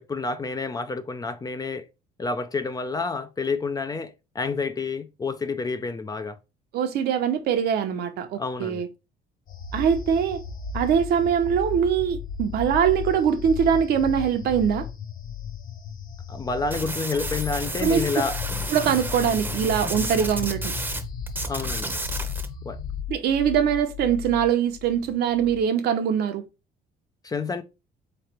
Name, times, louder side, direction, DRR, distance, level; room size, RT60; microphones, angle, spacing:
voice 1, 0.0-1.9 2.2-6.4 8.4-8.8 16.3-18.4 21.5-22.0 22.6-22.8 27.2-27.6, left 4 dB, 20° left, 0.5 m, -29 dB
voice 2, 6.7-8.9 9.7-10.4 10.7-14.9 17.8-18.0 18.7-20.7 23.1-26.4, right 8 dB, 70° right, 0.9 m, -23 dB
sound 1, 9.5-23.0, left 4 dB, 55° left, 0.8 m, -37 dB
sound 2, 10.6-25.6, left 12 dB, 80° left, 1.2 m, -37 dB
sound 3, 16.7-21.0 21.3-22.5, right 2 dB, 10° right, 0.9 m, -32 dB
3.8 x 3.3 x 4.3 m
cardioid pair, 110°, 17 cm